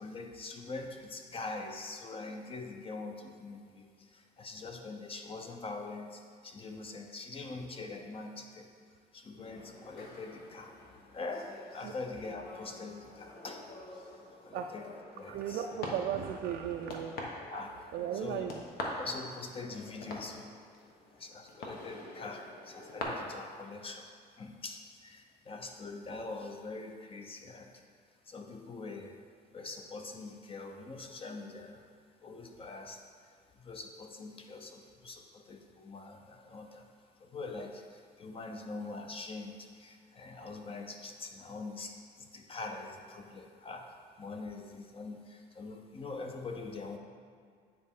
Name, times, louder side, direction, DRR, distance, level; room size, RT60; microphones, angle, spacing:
voice 1, 0.0-8.7 9.1-10.7 11.1-14.8 15.1-15.7 17.5-18.4 18.9-20.5 21.1-27.8 28.2-29.2 29.5-31.9 32.2-36.9 37.1-47.0, left 3 dB, 35° left, 4 dB, 0.7 m, -44 dB
sound 1, 9.4-23.0, left 2 dB, 65° left, 1.2 m, -46 dB
voice 2, 15.3-17.2 17.9-18.6, right 9 dB, 70° right, 3 dB, 0.4 m, -35 dB
9.4 x 4.2 x 3.7 m, 2.1 s
cardioid pair, 110°, 17 cm